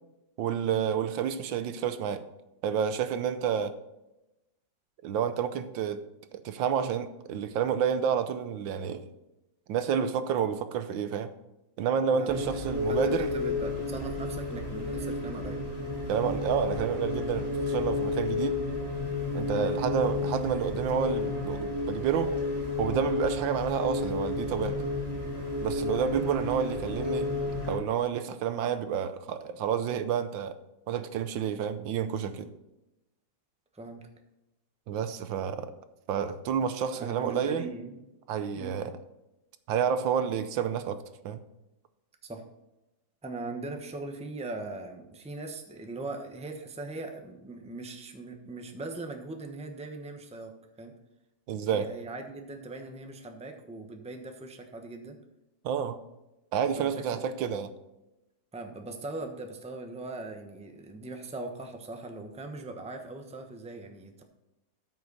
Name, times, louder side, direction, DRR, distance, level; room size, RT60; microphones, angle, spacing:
voice 1, 0.4-2.2 2.6-3.7 5.0-6.0 6.3-9.1 9.7-11.3 11.8-13.3 16.1-18.6 19.3-22.4 22.8-24.8 25.6-27.3 27.7-30.6 30.9-32.5 34.9-35.7 36.1-37.7 38.3-39.0 39.7-41.4 51.5-51.9 55.6-56.0 56.5-57.7, right 7 dB, 85° right, 1.5 m, -29 dB
sound 1, 12.3-27.8, left 3 dB, 20° left, 3.8 m, -32 dB
voice 2, 12.9-15.6 19.5-19.7 26.1-26.3 33.7-34.1 37.0-38.0 38.5-38.7 42.2-42.4 43.2-50.9 51.7-55.2 56.8-57.2 58.5-64.2, right 2 dB, 5° right, 0.8 m, -40 dB
13.5 x 6.3 x 4.1 m
omnidirectional pair, 2.1 m